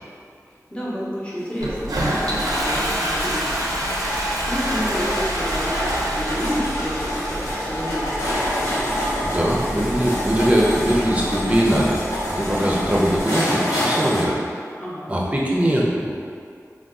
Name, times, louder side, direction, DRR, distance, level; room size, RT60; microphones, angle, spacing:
voice 1, 0.7-8.2 14.8-15.2, equal, 20° left, -8 dB, 0.8 m, -30 dB
sound 1, 1.4-14.2, equal, 60° left, 0.9 m, -27 dB
Toilet flush, 1.6-13.2, right 1 dB, 85° right, 0.4 m, -28 dB
voice 2, 8.9-12.0 12.3-14.3 15.1-16.1, equal, 20° right, -4 dB, 0.6 m, -21 dB
2.6 x 2.3 x 3.6 m, 2.2 s
wide cardioid pair, 45°, 6 cm